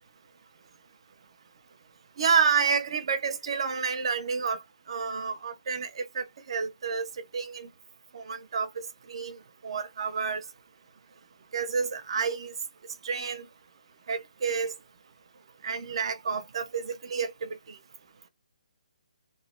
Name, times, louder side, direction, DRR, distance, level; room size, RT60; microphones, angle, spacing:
voice 1, 2.2-4.6 4.9-7.1 7.3-7.7 8.1-9.4 9.6-10.4 11.5-12.5 13.0-13.4 14.1-14.7 15.6-17.5, right 6 dB, 40° right, 0.4 m, -29 dB
3.0 x 2.0 x 2.4 m
hypercardioid pair, 175°, 4 cm